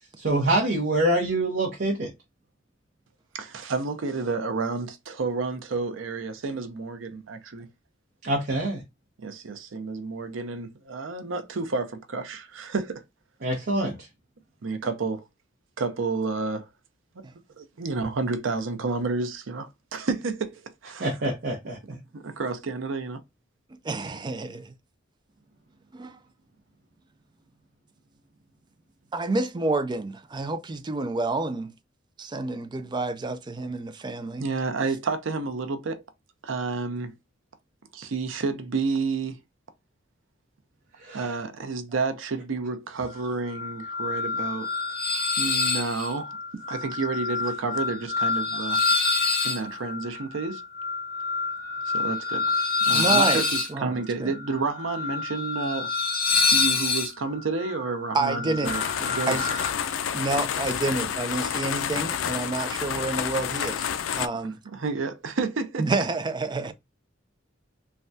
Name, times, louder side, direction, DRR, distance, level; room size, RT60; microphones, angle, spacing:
voice 1, 0.2-2.1 8.2-8.8 13.4-14.0 21.0-21.8 41.0-41.3, right 1 dB, 55° right, 0.7 m, -25 dB
voice 2, 3.3-7.7 9.2-13.0 14.6-15.3 15.8-16.7 17.2-17.3 17.6-21.3 22.1-23.2 34.4-36.0 36.4-37.1 37.9-39.4 41.1-44.7 45.4-46.4 46.7-48.8 49.4-50.6 51.9-52.5 52.8-55.9 56.5-59.5 64.6-65.9, right 4 dB, 90° right, 0.6 m, -30 dB
voice 3, 23.8-24.7 25.9-26.2 29.1-31.7 32.2-34.5 52.9-53.4 53.7-54.3 58.1-58.8 59.3-59.4 60.1-63.8 64.1-64.6 65.8-66.7, right 3 dB, 25° right, 0.3 m, -29 dB
sound 1, 43.5-59.7, left 4 dB, 50° left, 0.9 m, -27 dB
sound 2, 58.6-64.3, left 8 dB, 90° left, 0.3 m, -29 dB
3.3 x 2.2 x 2.6 m
head